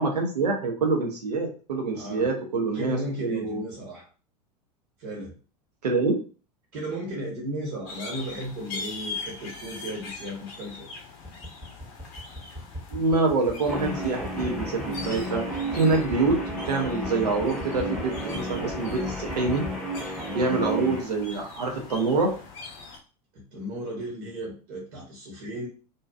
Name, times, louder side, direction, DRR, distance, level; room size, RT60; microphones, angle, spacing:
voice 1, 0.0-3.6 5.8-6.2 12.9-19.6 20.3-22.3, right 3 dB, 75° right, 2 dB, 0.6 m, -26 dB
voice 2, 1.9-2.3 2.7-4.1 5.0-5.3 6.7-10.9 20.2-20.6 23.3-25.7, equal, 50° right, -2 dB, 0.9 m, -35 dB
sound 1, 7.9-23.0, left 4 dB, 50° left, 0.7 m, -42 dB
sound 2, 11.2-19.8, equal, 20° right, 1.0 m, -39 dB
Guitar, 13.6-21.1, equal, ahead, 0.7 m, -32 dB
2.6 x 2.3 x 2.3 m, 0.37 s
figure-of-eight pair, 80°, 21 cm